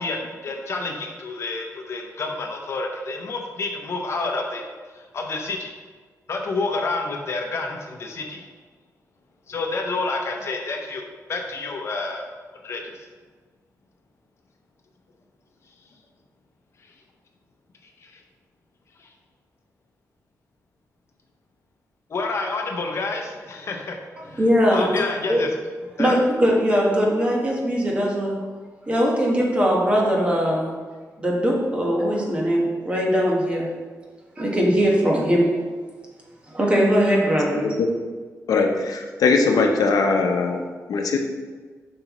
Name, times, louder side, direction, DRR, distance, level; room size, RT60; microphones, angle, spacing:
voice 1, 0.0-4.7 5.1-5.7 6.3-8.4 9.5-11.0 11.3-12.2 12.6-12.9 19.0-19.1 22.1-24.0 24.3-24.4 24.7-25.5 26.0-26.2, left 3 dB, 50° left, 2 dB, 0.8 m, -28 dB
voice 2, 24.4-24.9 25.3-25.4 26.0-28.4 28.9-30.7 31.2-33.7 34.4-35.5 36.5-37.6, equal, 20° right, -3 dB, 1.2 m, -20 dB
voice 3, 38.5-41.2, left 4 dB, 85° left, 3 dB, 0.7 m, -21 dB
7.8 x 5.5 x 3.0 m, 1.5 s
wide cardioid pair, 175°, 6 cm